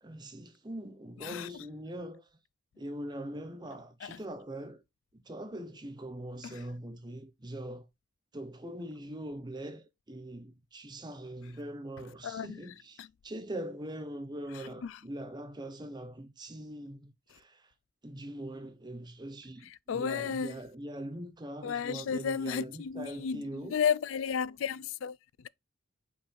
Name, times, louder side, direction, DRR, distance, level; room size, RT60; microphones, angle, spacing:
voice 1, 0.0-2.4 2.8-4.8 5.1-7.9 8.3-17.7 18.0-23.8, right 1 dB, 20° right, 0.7 m, -42 dB
voice 2, 1.2-1.7 4.0-4.2 6.4-6.6 12.2-13.1 14.5-15.0 17.3-17.4 19.6-20.6 21.6-25.5, left 7 dB, 65° left, 0.4 m, -34 dB
5.5 x 4.5 x 4.4 m
head